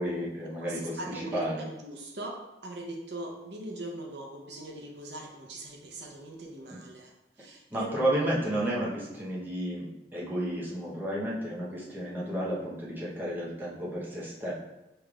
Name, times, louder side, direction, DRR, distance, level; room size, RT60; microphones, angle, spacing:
voice 1, 0.0-1.6 7.7-14.5, right 1 dB, 10° right, -6 dB, 0.9 m, -32 dB
voice 2, 0.6-7.1 7.4-7.9, right 1 dB, 70° right, 0 dB, 0.7 m, -41 dB
6.8 x 3.1 x 2.4 m, 0.96 s
head